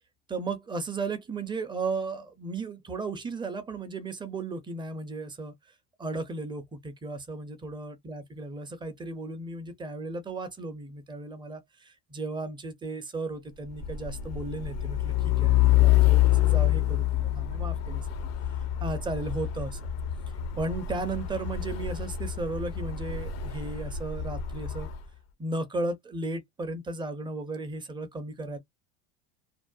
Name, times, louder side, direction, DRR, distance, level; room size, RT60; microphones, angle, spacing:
voice 1, 0.3-5.5 6.0-18.1 18.8-19.8 20.6-24.9 25.4-28.6, right 3 dB, 10° right, 0.5 m, -35 dB
Truck, 13.6-25.0, left 13 dB, 40° left, 0.5 m, -26 dB
2.6 x 2.0 x 2.3 m
supercardioid pair, 110°, 42 cm